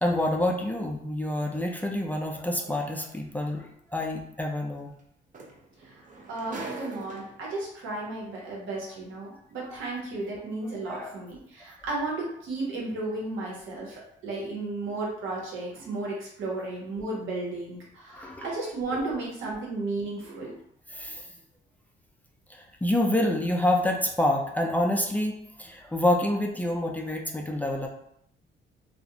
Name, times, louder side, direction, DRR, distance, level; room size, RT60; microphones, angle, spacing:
voice 1, 0.0-4.9 10.9-11.1 18.1-18.6 18.9-19.1 20.9-21.3 22.5-27.9, left 1 dB, 10° left, 0 dB, 0.3 m, -27 dB
sound 1, 3.2-3.3 5.0-5.1 5.3-7.6 8.5-8.6, right 2 dB, 40° right, 0.6 m, -41 dB
voice 2, 6.3-20.6, right 2 dB, 85° right, -4 dB, 0.9 m, -34 dB
2.4 x 2.1 x 2.7 m, 0.70 s
cardioid pair, 90°, 20 cm